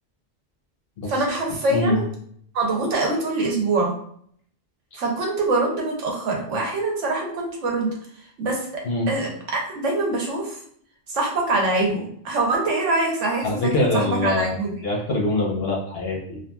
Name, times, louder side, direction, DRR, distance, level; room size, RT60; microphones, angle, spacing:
voice 1, 1.1-2.0 2.5-3.9 5.0-7.9 8.4-10.6 11.1-14.7, right 2 dB, 70° right, 0 dB, 1.0 m, -24 dB
voice 2, 1.7-2.0 8.8-9.1 13.4-16.4, left 2 dB, 60° left, -2 dB, 0.7 m, -24 dB
2.9 x 2.4 x 2.2 m, 0.64 s
omnidirectional pair, 1.3 m